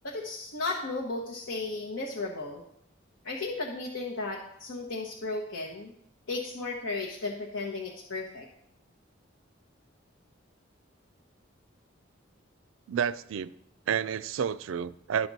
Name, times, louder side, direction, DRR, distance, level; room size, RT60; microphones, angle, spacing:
voice 1, 0.0-2.6 3.2-5.9 6.3-8.5, left 3 dB, 85° left, 1.1 m, -34 dB
voice 2, 12.9-13.5 13.9-15.3, right 7 dB, 80° right, 0.4 m, -30 dB
12.0 x 6.0 x 4.1 m
head